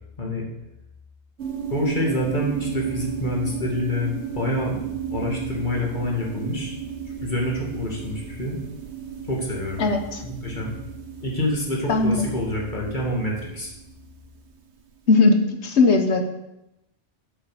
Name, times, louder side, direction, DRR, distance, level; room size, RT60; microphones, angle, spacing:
sound 1, 1.4-14.8, right 8 dB, 75° right, 1.5 m, -34 dB
voice 1, 1.7-4.8 5.1-6.8 7.2-8.6 9.3-9.9 10.2-10.7 11.2-13.7, left 1 dB, 45° left, -2 dB, 2.7 m, -27 dB
voice 2, 9.8-10.2 11.9-12.2 15.1-15.4 15.6-16.2, left 3 dB, 75° left, 6 dB, 1.5 m, -18 dB
8.0 x 7.9 x 6.8 m, 0.90 s
omnidirectional pair, 1.2 m